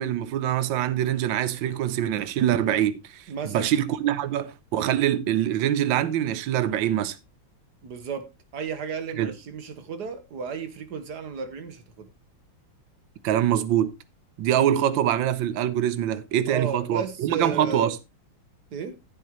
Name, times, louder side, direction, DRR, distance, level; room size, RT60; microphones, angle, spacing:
voice 1, 0.0-7.2 9.2-9.3 13.2-13.9 14.4-18.0, right 11 dB, 70° right, 1.5 m, -24 dB
voice 2, 3.3-3.7 7.8-12.1 16.5-17.9 18.7-19.0, right 5 dB, 55° right, 1.9 m, -33 dB
14.5 x 7.7 x 3.1 m
omnidirectional pair, 2.2 m